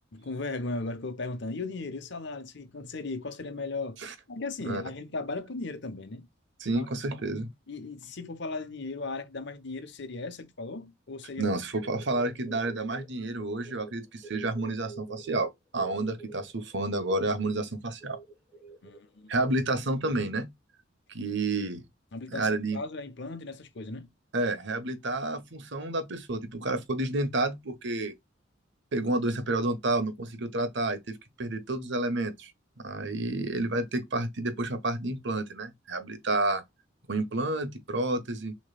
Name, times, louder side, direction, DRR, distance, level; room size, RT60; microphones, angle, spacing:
voice 1, 0.1-4.0 4.3-6.3 6.7-6.9 7.7-11.6 18.8-19.3 22.1-22.5 22.7-24.1, left 3 dB, 65° left, 1.0 m, -36 dB
voice 2, 6.6-7.5 11.4-18.2 19.3-20.5 21.1-21.8 22.3-22.8 24.3-28.1 28.9-32.5 32.8-36.6 37.1-38.6, right 2 dB, 65° right, 1.1 m, -30 dB
sound 1, 11.8-13.9 14.2-15.4 15.8-17.4 18.0-19.0, right 4 dB, 10° right, 1.5 m, -46 dB
6.6 x 3.1 x 2.3 m
head